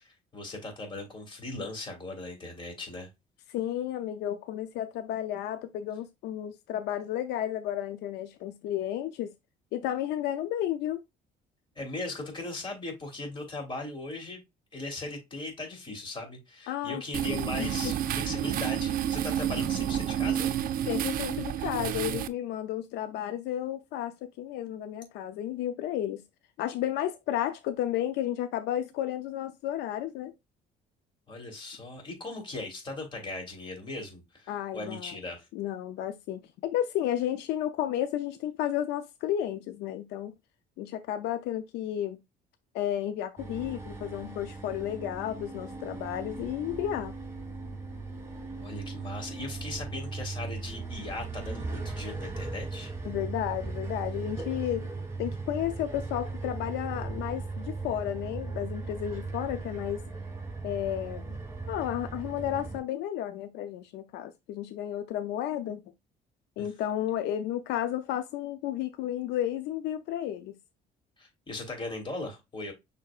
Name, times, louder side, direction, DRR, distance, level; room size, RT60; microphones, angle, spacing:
voice 1, 0.0-3.1 11.8-14.4 14.7-20.5 31.3-35.5 48.6-52.9 66.6-66.7 71.2-72.7, left 2 dB, 30° left, 3.0 m, -38 dB
voice 2, 3.5-9.3 9.7-11.0 16.7-17.9 20.8-26.2 26.6-30.3 34.5-35.2 35.5-40.3 40.8-42.2 42.7-47.2 53.0-54.9 55.2-60.0 60.6-61.4 61.7-65.8 66.6-70.5, left 11 dB, 85° left, 0.5 m, -32 dB
sound 1, 17.1-22.3, right 10 dB, 55° right, 0.5 m, -30 dB
sound 2, 43.4-62.8, right 3 dB, 15° right, 3.0 m, -38 dB
6.5 x 3.5 x 2.4 m
cardioid pair, 110°, 17 cm